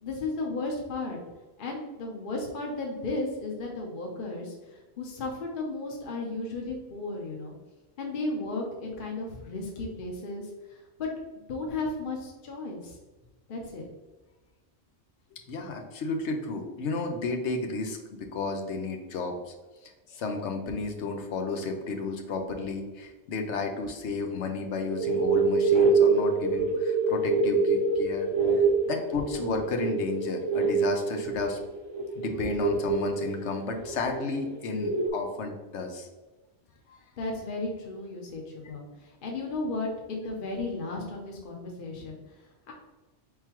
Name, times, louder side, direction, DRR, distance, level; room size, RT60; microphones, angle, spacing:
voice 1, 0.0-1.2 1.6-7.5 8.0-11.1 11.5-13.0 13.5-13.9 37.2-42.7, left 2 dB, 55° left, 0 dB, 0.9 m, -34 dB
voice 2, 15.5-19.5 20.1-28.3 28.9-31.6 32.2-36.1, left 3 dB, 85° left, 4 dB, 1.0 m, -32 dB
sound 1, 24.9-35.1, right 4 dB, 30° right, 0.6 m, -25 dB
4.6 x 3.7 x 2.9 m, 1.2 s
omnidirectional pair, 1.1 m